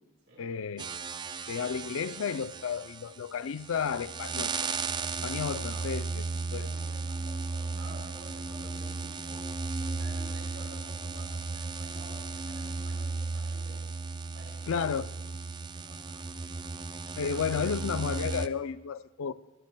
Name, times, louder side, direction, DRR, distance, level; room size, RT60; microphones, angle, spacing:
voice 1, 0.4-0.9 1.5-4.5 5.2-6.2 6.5-6.7 14.7-15.1 17.2-19.3, left 6 dB, 75° left, 0.4 m, -32 dB
sound 1, 0.8-18.5, right 4 dB, 20° right, 0.3 m, -35 dB
voice 2, 5.4-5.9 6.5-9.5 9.8-13.8 14.3-14.9 15.7-16.3, right 1 dB, 60° right, 5.2 m, -51 dB
24.5 x 15.0 x 2.2 m
head